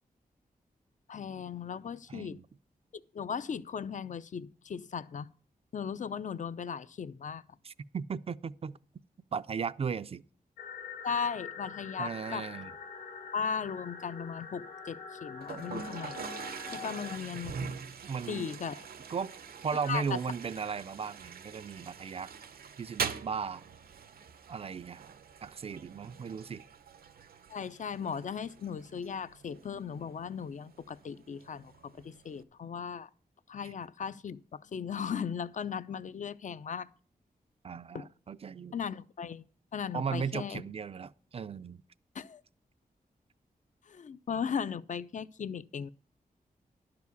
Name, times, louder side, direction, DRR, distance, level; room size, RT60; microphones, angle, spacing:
voice 1, 1.1-2.4 3.1-5.3 5.7-7.4 11.0-12.5 13.3-16.2 16.7-17.8 18.3-18.9 19.8-20.2 27.5-33.1 33.5-36.9 37.9-38.1 38.7-39.5 39.7-40.6 42.1-42.4 43.9-45.9, left 7 dB, 55° left, 0.5 m, -37 dB
voice 2, 2.1-2.4 7.6-8.8 9.3-10.2 12.0-12.7 18.0-18.5 19.1-19.3 19.6-22.3 22.8-23.6 24.5-25.0 25.4-26.6 37.6-38.7 39.9-41.8, right 6 dB, 40° right, 0.4 m, -36 dB
sound 1, 10.6-17.2, left 5 dB, 75° left, 1.1 m, -44 dB
Toilet flush, 15.4-32.4, right 6 dB, 80° right, 0.7 m, -44 dB
11.5 x 4.9 x 8.1 m
wide cardioid pair, 125°, 15 cm